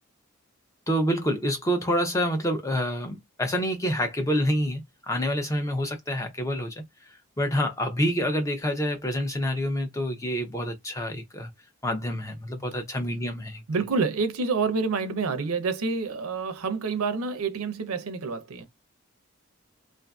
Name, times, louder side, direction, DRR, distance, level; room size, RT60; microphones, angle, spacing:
voice 1, 0.9-6.8 7.4-11.5 11.8-13.6, equal, 15° left, 0.5 m, -27 dB
voice 2, 13.7-18.7, right 4 dB, 80° right, 0.6 m, -28 dB
2.5 x 2.4 x 2.3 m
head